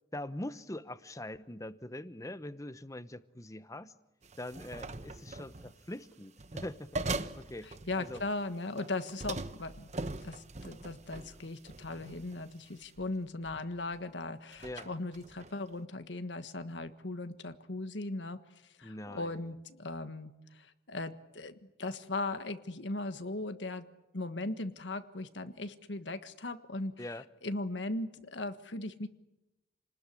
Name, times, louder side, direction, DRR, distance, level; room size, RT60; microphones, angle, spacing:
voice 1, 0.1-3.9 4.4-8.2 14.6-14.9 18.8-19.5 27.0-27.3, left 1 dB, 20° left, 0.9 m, -43 dB
sound 1, 4.2-5.8 6.4-8.4 8.8-12.4 13.0-13.2 13.4-14.0 14.5-15.5, right 2 dB, 40° right, 1.1 m, -41 dB
voice 2, 7.9-9.9 10.2-23.8 24.1-27.1 27.4-29.1, left 2 dB, 75° left, 1.5 m, -38 dB
29.0 x 20.0 x 9.9 m
head